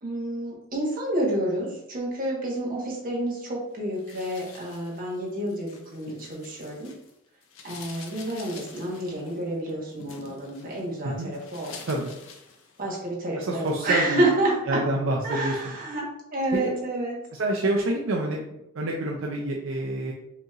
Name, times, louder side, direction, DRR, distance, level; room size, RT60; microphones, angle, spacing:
voice 1, 0.0-6.9 7.6-11.8 12.8-14.8 15.2-17.2, right 1 dB, 45° right, -3 dB, 1.3 m, -29 dB
sound 1, 4.0-7.1 7.4-13.1 13.5-13.9, left 4 dB, 85° left, 0.7 m, -47 dB
voice 2, 13.4-14.2 14.7-15.7 17.4-20.1, right 1 dB, 75° right, -1 dB, 0.5 m, -27 dB
5.1 x 2.9 x 2.4 m, 0.83 s
head